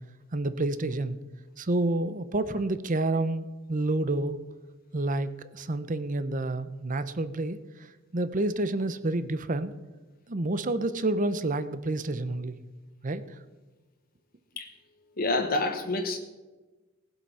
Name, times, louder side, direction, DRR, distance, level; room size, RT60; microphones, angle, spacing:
voice 1, 0.3-1.2 1.6-4.4 4.9-7.6 8.1-9.7 10.3-12.6 13.0-13.2, right 2 dB, 40° right, 13 dB, 0.8 m, -29 dB
voice 2, 15.2-16.2, left 2 dB, 50° left, 4 dB, 1.2 m, -27 dB
18.5 x 8.0 x 5.7 m, 1.2 s
head